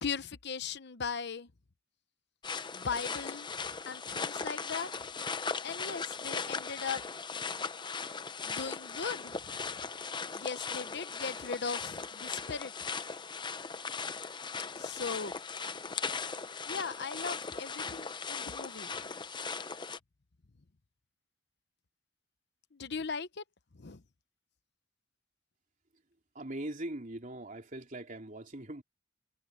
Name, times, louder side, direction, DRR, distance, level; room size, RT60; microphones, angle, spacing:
voice 1, 0.0-1.5 2.7-3.5 3.9-4.9 5.6-7.0 8.4-9.8 10.3-12.7 14.8-15.3 16.6-18.9 19.3-19.4 22.7-23.4 23.7-24.0, left 5 dB, 55° left, 0.9 m, -38 dB
sound 1, 2.4-20.0, left 5 dB, 25° left, 0.7 m, -38 dB
voice 2, 26.4-28.8, right 1 dB, 40° right, 3.3 m, -41 dB
head